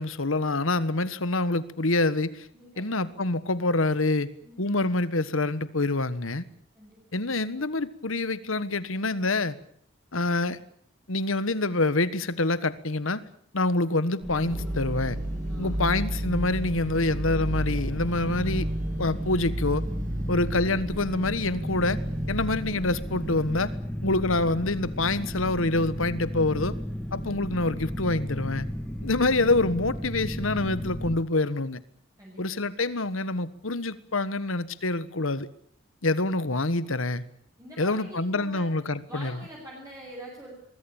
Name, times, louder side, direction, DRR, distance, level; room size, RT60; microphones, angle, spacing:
voice 1, 0.0-2.5 2.8-4.3 4.6-6.4 7.1-9.5 10.1-10.6 11.1-13.2 13.5-15.2 15.6-18.7 19.0-19.8 20.3-22.0 22.3-23.8 24.0-26.8 27.1-28.7 29.0-31.8 32.4-35.5 36.0-37.2 37.8-39.4, left 2 dB, 80° left, 15 dB, 1.4 m, -26 dB
voice 2, 2.5-3.2 4.4-4.6 6.7-7.3 15.5-15.9 32.2-32.6 37.6-38.7 39.1-40.5, right 1 dB, 15° right, -3 dB, 8.0 m, -45 dB
sound 1, 14.2-31.2, equal, 5° left, 2.4 m, -35 dB
sound 2, 14.4-23.7, right 1 dB, 35° right, 1.6 m, -33 dB
24.0 x 21.5 x 9.0 m, 0.65 s
head